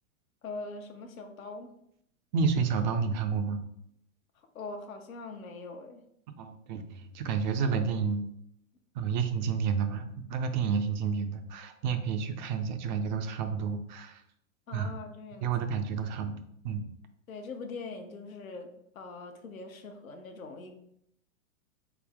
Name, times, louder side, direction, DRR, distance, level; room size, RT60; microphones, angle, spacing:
voice 1, 0.4-1.7 4.5-6.0 14.7-15.5 17.3-20.7, left 3 dB, 80° left, 5 dB, 1.0 m, -42 dB
voice 2, 2.3-3.6 6.4-8.3 8.9-14.2 14.7-15.0 15.4-16.9, right 6 dB, 35° right, 8 dB, 0.4 m, -30 dB
4.0 x 3.5 x 3.5 m, 0.73 s
hypercardioid pair, 115°, 41 cm